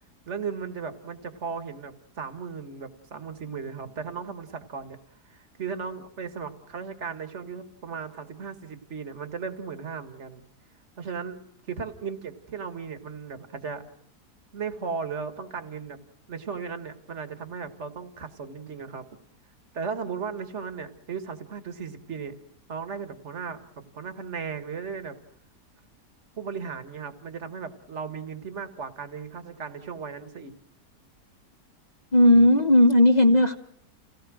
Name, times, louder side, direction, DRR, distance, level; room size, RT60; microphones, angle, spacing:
voice 1, 0.3-5.0 5.3-10.4 11.0-11.4 11.7-13.8 14.5-16.0 16.3-19.2 19.7-22.3 22.7-23.7 23.9-25.2 26.4-30.6, right 6 dB, 45° right, 9 dB, 2.0 m, -36 dB
voice 2, 32.1-33.6, left 1 dB, 30° left, 6 dB, 1.1 m, -16 dB
29.0 x 17.5 x 6.3 m, 0.72 s
omnidirectional pair, 1.7 m